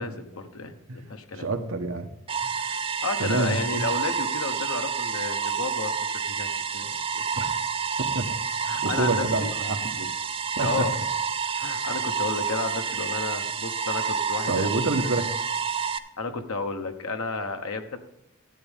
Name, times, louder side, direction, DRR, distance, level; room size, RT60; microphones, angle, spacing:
voice 1, 0.0-1.5 3.0-5.9 6.3-6.5 6.7-7.2 8.7-9.5 10.6-10.9 11.6-14.7 16.2-18.0, left 3 dB, 85° left, 6 dB, 1.2 m, -32 dB
voice 2, 1.3-2.1 2.4-2.8 3.2-3.9 7.4-7.5 8.0-8.3 8.6-10.1 10.6-10.9 14.5-15.3, right 2 dB, 75° right, 5 dB, 1.2 m, -28 dB
sound 1, 2.3-16.0, right 6 dB, 25° right, 0.5 m, -29 dB
12.5 x 8.4 x 3.5 m, 0.88 s
head